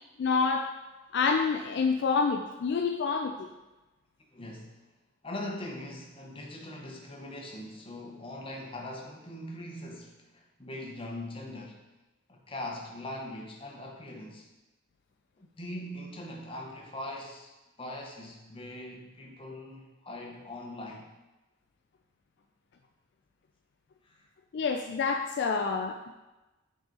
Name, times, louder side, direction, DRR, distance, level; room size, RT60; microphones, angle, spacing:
voice 1, 0.2-0.7 1.1-3.5 24.5-26.0, left 5 dB, 55° left, 4 dB, 0.3 m, -27 dB
voice 2, 4.3-4.8 5.2-11.8 12.3-14.5 15.4-17.5 17.8-21.1 24.0-24.3, left 1 dB, 25° left, 0 dB, 0.9 m, -41 dB
7.7 x 4.0 x 3.8 m, 1.1 s
head